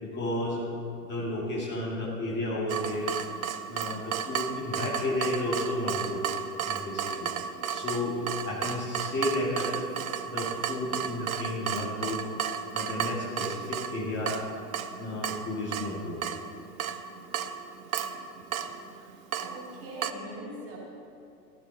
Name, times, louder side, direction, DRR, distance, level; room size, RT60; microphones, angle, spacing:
voice 1, 0.0-0.7 1.0-3.1 3.7-6.2 6.6-7.3 7.7-8.2 8.4-9.9 10.2-12.2 12.7-14.4 15.0-16.2, left 1 dB, 20° left, -5 dB, 2.6 m, -32 dB
Water tap faucet / Drip, 2.7-20.1, right 8 dB, 55° right, 0.8 m, -34 dB
voice 2, 18.9-20.8, right 1 dB, 30° right, -3 dB, 3.3 m, -42 dB
15.0 x 13.5 x 4.3 m, 2.6 s
figure-of-eight pair, 100°, 49 cm